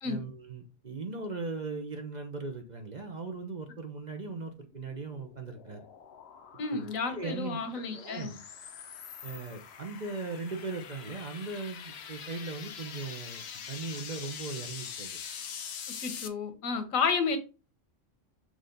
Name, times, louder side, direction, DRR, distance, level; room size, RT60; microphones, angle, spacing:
voice 1, 0.0-5.9 6.7-7.6 7.9-8.4 9.2-15.2, right 3 dB, 40° right, 0.9 m, -39 dB
sound 1, 4.7-16.3, left 7 dB, 60° left, 0.9 m, -44 dB
voice 2, 6.6-8.3 16.0-17.4, left 5 dB, 85° left, 1.4 m, -31 dB
6.4 x 2.9 x 5.1 m
omnidirectional pair, 1.4 m